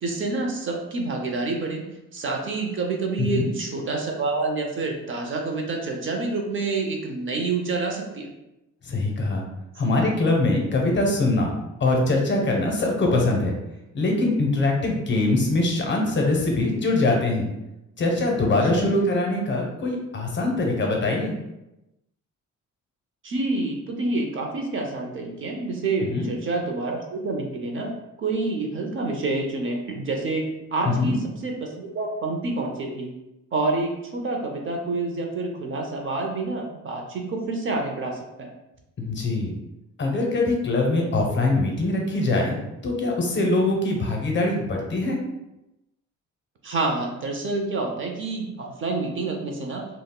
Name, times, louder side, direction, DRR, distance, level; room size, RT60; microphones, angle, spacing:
voice 1, 0.0-8.3 18.6-18.9 23.2-27.9 28.2-33.2 33.5-38.5 46.6-49.9, right 3 dB, 40° right, 2 dB, 0.4 m, -28 dB
voice 2, 3.2-3.5 8.9-9.4 9.8-11.5 11.8-13.5 13.9-17.5 18.0-21.3 26.1-26.3 30.9-31.1 39.0-39.5 40.0-42.6 42.8-45.2, left 2 dB, 40° left, 0 dB, 0.5 m, -23 dB
2.2 x 2.0 x 3.6 m, 0.93 s
cardioid pair, 140°, 31 cm